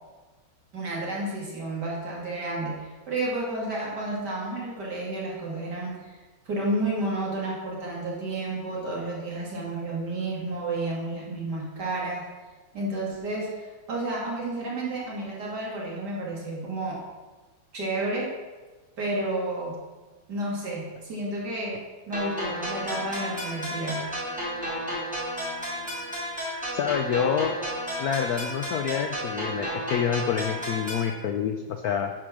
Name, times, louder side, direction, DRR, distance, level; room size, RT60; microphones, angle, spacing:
voice 1, 0.7-6.1 6.5-12.2 12.7-17.0 17.7-18.3 19.0-19.7 20.3-21.7 22.1-24.0, right 2 dB, 50° right, -4 dB, 2.9 m, -31 dB
sound 1, 22.1-31.1, equal, 5° right, 2.7 m, -32 dB
voice 2, 26.7-27.6 28.0-32.1, left 8 dB, 85° left, 6 dB, 0.8 m, -27 dB
11.0 x 5.0 x 6.0 m, 1.3 s
omnidirectional pair, 2.3 m